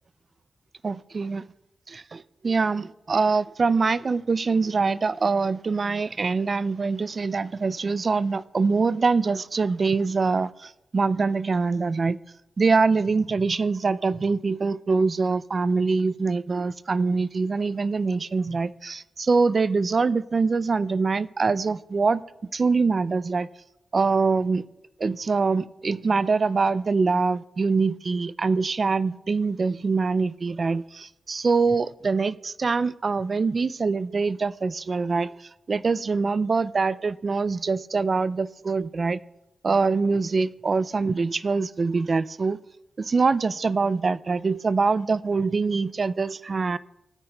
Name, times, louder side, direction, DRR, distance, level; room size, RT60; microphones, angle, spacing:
voice 1, 0.8-1.5 1.9-12.2 12.6-22.2 22.5-23.5 23.9-24.6 25.0-39.2 39.6-42.6 43.0-46.8, right 4 dB, 45° right, 0.3 m, -24 dB
17.5 x 9.4 x 2.2 m
wide cardioid pair, 115°, 0 cm